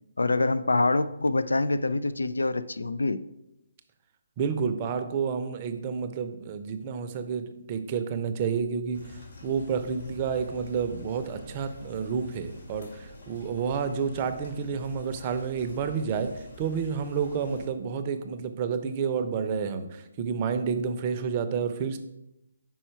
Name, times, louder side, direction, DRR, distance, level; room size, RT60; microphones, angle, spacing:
voice 1, 0.2-3.2, left 2 dB, 85° left, 13 dB, 0.3 m, -25 dB
voice 2, 4.4-16.3 16.6-22.0, right 6 dB, 30° right, 8 dB, 0.6 m, -30 dB
sound 1, 8.9-17.7, left 2 dB, 60° left, 2.1 m, -46 dB
5.5 x 4.5 x 4.5 m, 0.87 s
figure-of-eight pair, 145°, 0 cm